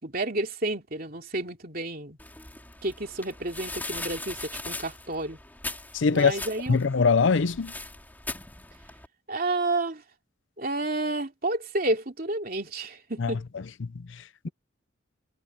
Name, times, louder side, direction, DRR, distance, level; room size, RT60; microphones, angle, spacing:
voice 1, 0.0-2.2 2.8-5.4 6.1-6.8 9.3-10.0 10.6-13.4, right 2 dB, 45° right, 3.0 m, -30 dB
sound 1, 2.2-9.1, left 2 dB, 10° left, 3.7 m, -40 dB
voice 2, 5.9-6.4 6.7-7.7 13.2-13.3 13.8-14.5, left 5 dB, 70° left, 0.6 m, -23 dB
head